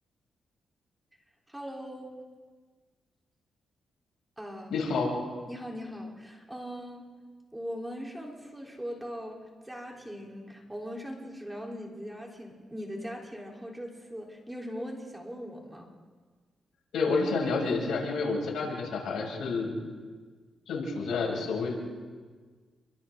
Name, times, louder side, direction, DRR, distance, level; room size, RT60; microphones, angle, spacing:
voice 1, 1.5-2.2 4.4-4.8 5.5-7.1 7.5-15.9, equal, 10° right, -1 dB, 4.1 m, -40 dB
voice 2, 4.7-5.1 16.9-19.7 20.7-21.7, left 4 dB, 85° left, -2 dB, 7.3 m, -29 dB
29.5 x 24.5 x 3.9 m, 1.5 s
cardioid pair, 90°, 0 cm